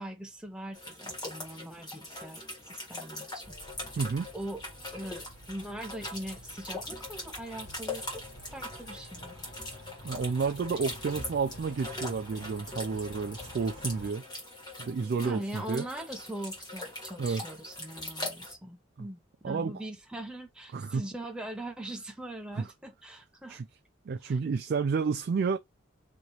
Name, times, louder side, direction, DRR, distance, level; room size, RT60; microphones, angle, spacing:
voice 1, 0.0-3.6 4.3-4.6 4.9-8.2 8.5-9.4 15.2-23.6 24.2-24.4, right 1 dB, 5° right, 0.7 m, -41 dB
sound 1, 0.7-18.5, left 1 dB, 20° left, 1.6 m, -41 dB
sound 2, 3.4-14.1, equal, 60° left, 1.9 m, -50 dB
voice 2, 4.0-4.3 10.0-14.2 14.8-15.8 17.2-17.4 19.4-19.7 20.7-21.0 22.6-22.7 23.5-23.6 24.1-25.6, right 5 dB, 50° right, 0.3 m, -30 dB
3.1 x 2.9 x 4.0 m
head